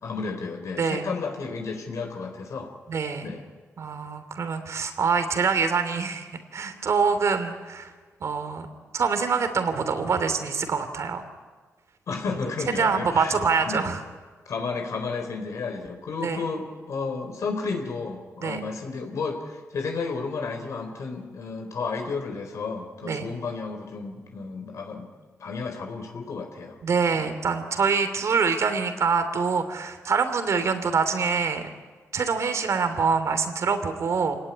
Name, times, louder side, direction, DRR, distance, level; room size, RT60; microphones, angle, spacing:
voice 1, 0.0-2.7 3.2-3.4 12.1-13.4 13.6-13.9 14.5-25.1 25.4-26.8 27.1-27.3, left 4 dB, 65° left, 3 dB, 3.8 m, -32 dB
voice 2, 0.8-1.1 2.9-3.3 3.8-7.9 8.2-8.7 8.9-11.2 12.8-14.0 16.2-16.4 18.4-18.6 23.0-23.3 26.8-31.7 32.1-34.4, right 5 dB, 60° right, 9 dB, 3.0 m, -25 dB
27.5 x 19.0 x 9.8 m, 1.4 s
wide cardioid pair, 110°, 6 cm